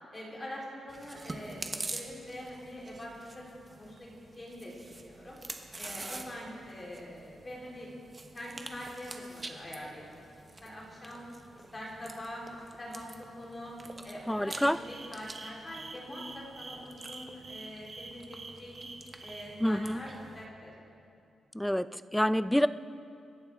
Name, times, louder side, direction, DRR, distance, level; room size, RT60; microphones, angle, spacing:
voice 1, 0.1-1.7 1.9-5.4 5.8-7.9 8.3-10.2 10.6-11.3 11.7-12.4 12.8-13.0 13.4-13.7 14.0-18.9 19.2-20.7, equal, 20° left, -5 dB, 3.8 m, -44 dB
Chewing mastication, 0.9-20.5, right 2 dB, 20° right, 1.0 m, -47 dB
voice 2, 14.3-14.8 19.6-20.0 21.5-22.7, equal, 5° left, 14 dB, 0.3 m, -27 dB
sound 1, 14.4-19.5, right 3 dB, 40° right, 1.5 m, -46 dB
25.5 x 11.5 x 3.6 m, 2.5 s
wide cardioid pair, 150°, 0 cm